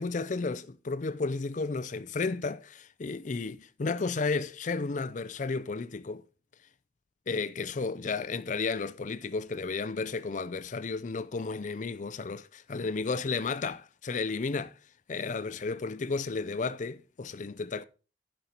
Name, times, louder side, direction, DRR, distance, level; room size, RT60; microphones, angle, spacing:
voice 1, 0.0-6.2 7.3-14.7 15.1-17.8, left 4 dB, 45° left, 0.5 m, -33 dB
11.0 x 5.4 x 4.3 m
head